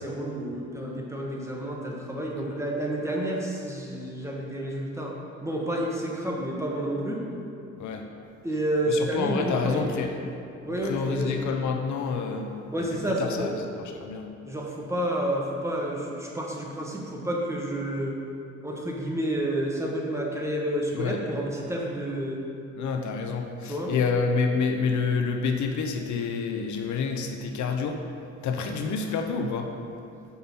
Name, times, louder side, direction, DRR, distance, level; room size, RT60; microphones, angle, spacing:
voice 1, 0.0-5.1 5.4-7.2 8.4-10.2 10.6-11.4 12.7-13.5 14.4-18.2 18.6-22.4 23.7-23.9, right 1 dB, 10° right, -2 dB, 1.5 m, -30 dB
voice 2, 8.9-10.1 10.8-12.5 12.8-13.5 14.0-14.3 20.9-21.2 22.8-28.0 28.4-29.7, left 5 dB, 75° left, 4 dB, 0.8 m, -28 dB
7.1 x 5.7 x 5.5 m, 2.6 s
cardioid pair, 90°, 30 cm